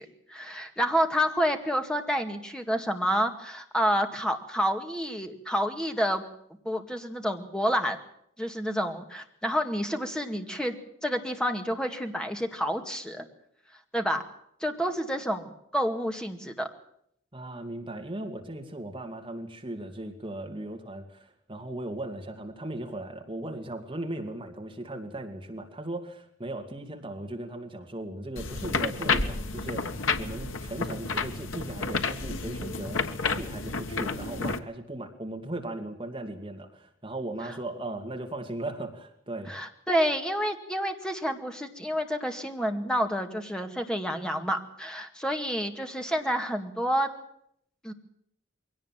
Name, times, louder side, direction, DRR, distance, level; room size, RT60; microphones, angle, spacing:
voice 1, 0.0-6.2 6.7-8.0 8.4-10.7 11.0-13.3 13.9-14.2 14.6-16.7 39.5-47.1 47.8-47.9, equal, 5° left, 5 dB, 2.0 m, -29 dB
voice 2, 17.3-39.6, right 1 dB, 25° right, 4 dB, 2.3 m, -37 dB
sound 1, 28.4-34.6, left 4 dB, 85° left, 1.5 m, -30 dB
22.5 x 17.5 x 7.5 m, 0.71 s
head